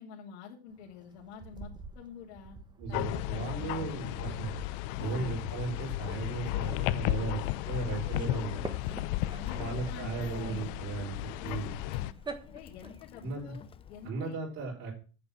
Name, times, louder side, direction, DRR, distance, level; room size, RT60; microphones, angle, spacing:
voice 1, 0.0-2.6 2.9-4.1 5.0-5.2 8.9-10.8 11.4-12.1 12.5-14.4, left 7 dB, 75° left, -4 dB, 2.7 m, -48 dB
sound 1, 0.7-13.3, right 4 dB, 15° right, 1.3 m, -48 dB
voice 2, 2.8-4.5 5.0-8.6 9.5-11.8 13.2-13.5 14.0-14.9, right 4 dB, 50° right, -5 dB, 5.1 m, -36 dB
sound 2, 2.9-12.1, left 17 dB, 60° left, 0.7 m, -34 dB
Child speech kid speaking, 8.8-14.1, left 6 dB, 15° left, 0.4 m, -49 dB
8.6 x 7.1 x 7.4 m, 0.36 s
supercardioid pair, 145°, 32 cm